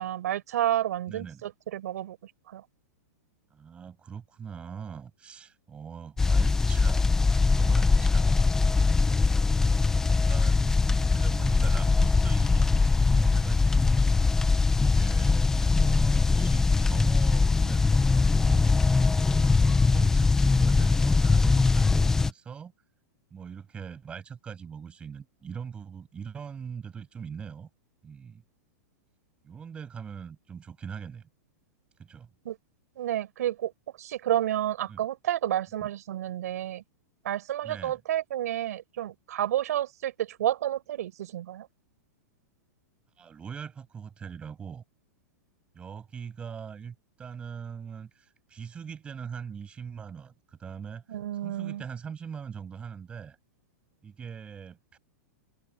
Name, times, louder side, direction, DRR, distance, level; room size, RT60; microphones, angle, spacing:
voice 1, 0.0-2.6 32.5-32.6 33.0-33.7 34.0-36.8 37.2-41.7 51.1-51.8, right 12 dB, 65° right, 5.1 m, -30 dB
voice 2, 1.1-1.4 3.5-8.4 9.3-10.0 10.3-14.1 14.8-18.7 19.5-22.7 23.3-27.7 28.0-28.4 29.4-31.3 32.0-32.3 34.9-35.0 35.8-35.9 37.6-38.0 43.2-44.8 45.7-51.0 51.4-53.4 54.0-55.0, right 7 dB, 10° right, 7.2 m, -41 dB
sound 1, 6.2-22.3, left 4 dB, 5° left, 0.4 m, -22 dB
supercardioid pair, 175°, 9 cm